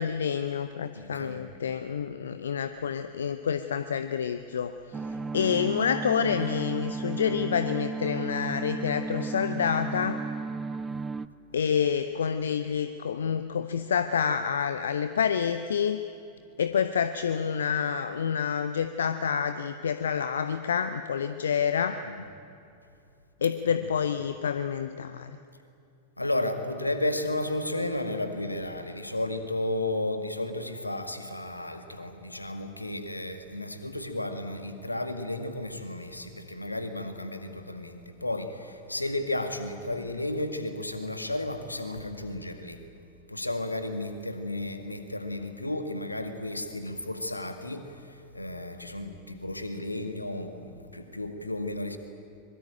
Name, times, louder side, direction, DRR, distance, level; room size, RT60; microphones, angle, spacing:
voice 1, 0.0-4.7 5.3-10.2 11.5-16.0 16.6-22.0 23.4-25.3, left 7 dB, 65° left, 11 dB, 0.7 m, -28 dB
voice 2, 1.0-1.4 22.1-22.2 23.6-23.9 26.2-42.8 43.3-47.8 48.3-52.0, left 1 dB, 85° left, 8 dB, 2.0 m, -33 dB
sound 1, 4.9-11.3, right 4 dB, 15° right, 0.6 m, -34 dB
24.5 x 22.5 x 9.1 m, 2.6 s
figure-of-eight pair, 90°, 0 cm